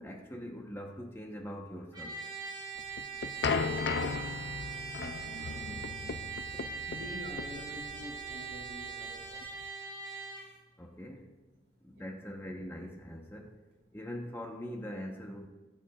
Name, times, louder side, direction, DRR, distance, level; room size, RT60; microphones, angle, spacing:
voice 1, 0.0-2.2 6.5-6.7 10.8-11.4 11.8-13.6 13.9-15.5, equal, 15° left, 2 dB, 1.0 m, -42 dB
Trumpet, 1.9-10.5, right 5 dB, 25° right, 3.0 m, -41 dB
sound 1, 2.8-9.6, left 5 dB, 65° left, 0.4 m, -36 dB
voice 2, 4.9-5.8 6.0-6.2 6.9-9.4 11.9-12.0, equal, 80° right, -2 dB, 3.2 m, -46 dB
19.5 x 7.2 x 2.4 m, 1.2 s
head